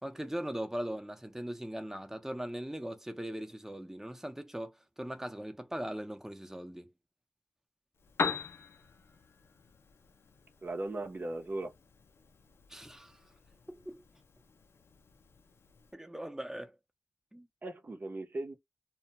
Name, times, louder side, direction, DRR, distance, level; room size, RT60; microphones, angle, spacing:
voice 1, 0.0-6.9 12.7-13.2 13.7-14.0 15.9-16.7 17.3-17.5, equal, 10° right, 0.7 m, -40 dB
Piano, 7.9-15.9, left 5 dB, 75° left, 0.5 m, -42 dB
voice 2, 10.6-11.7 17.6-18.5, right 2 dB, 50° right, 0.8 m, -38 dB
2.3 x 2.2 x 2.8 m
cardioid pair, 50°, 4 cm